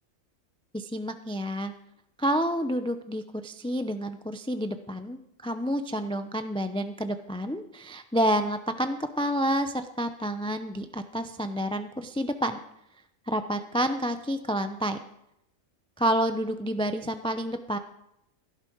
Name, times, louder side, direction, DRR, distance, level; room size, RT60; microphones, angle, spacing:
voice 1, 0.7-1.7 2.2-12.6 13.3-15.0 16.0-17.8, equal, 5° left, 8 dB, 0.4 m, -29 dB
17.0 x 11.5 x 4.7 m, 0.80 s
omnidirectional pair, 1.4 m